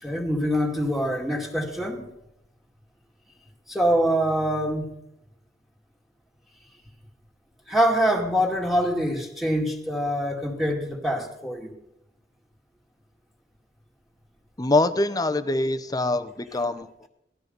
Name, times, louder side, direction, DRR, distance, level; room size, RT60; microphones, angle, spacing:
voice 1, 0.0-2.1 3.7-4.9 7.7-11.7, equal, ahead, 1 dB, 2.0 m, -24 dB
voice 2, 14.6-17.1, left 2 dB, 20° left, 11 dB, 0.8 m, -24 dB
18.0 x 12.5 x 5.3 m, 0.81 s
head